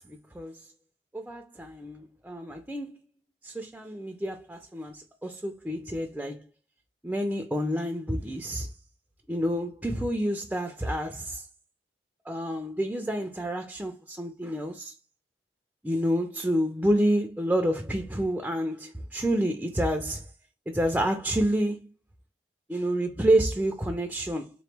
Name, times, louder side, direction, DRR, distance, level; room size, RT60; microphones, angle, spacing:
voice 1, 0.1-0.6 1.1-3.0 3.4-6.4 7.0-8.7 9.3-11.4 12.3-14.9 15.8-20.2 20.7-21.8 22.7-24.5, right 1 dB, 5° right, 0.4 m, -28 dB
3.7 x 3.0 x 3.2 m
head